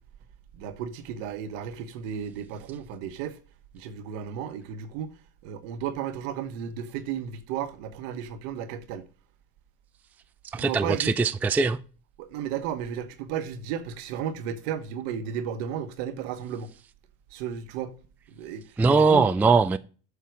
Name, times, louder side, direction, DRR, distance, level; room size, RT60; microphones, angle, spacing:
voice 1, 0.5-3.4 3.7-5.2 5.4-9.1 10.6-11.1 12.2-16.7 17.3-17.9 18.4-19.3, right 8 dB, 70° right, 1.2 m, -34 dB
voice 2, 10.5-11.8 18.8-19.8, right 4 dB, 5° right, 0.3 m, -21 dB
8.2 x 5.7 x 4.8 m
hypercardioid pair, 80°, 40 cm